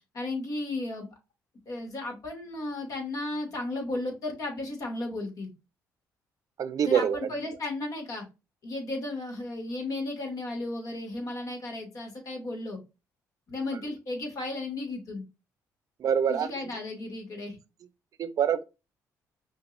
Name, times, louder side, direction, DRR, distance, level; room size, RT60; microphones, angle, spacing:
voice 1, 0.1-1.1 1.7-5.5 6.8-8.2 8.6-12.8 13.5-15.2 16.3-17.6, left 2 dB, 55° left, 2.0 m, -34 dB
voice 2, 6.6-7.3 13.7-13.8 16.0-16.5 18.2-18.6, right 8 dB, 55° right, 0.5 m, -25 dB
5.1 x 2.8 x 2.5 m
cardioid pair, 90°, 7 cm